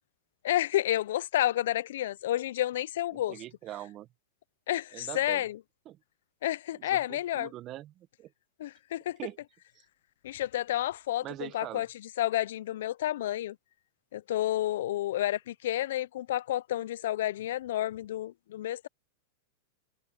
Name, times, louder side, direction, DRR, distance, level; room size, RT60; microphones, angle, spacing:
voice 1, 0.4-3.4 4.7-5.6 6.4-7.5 8.6-9.2 10.2-11.9 12.2-13.6 14.1-18.9, left 13 dB, 70° left, 0.3 m, -30 dB
voice 2, 3.1-4.1 4.9-5.4 5.9-6.0 6.7-8.3 9.2-9.4 9.8-9.9 11.2-11.8, right 14 dB, 30° right, 0.9 m, -43 dB
supercardioid pair, 150°, 0 cm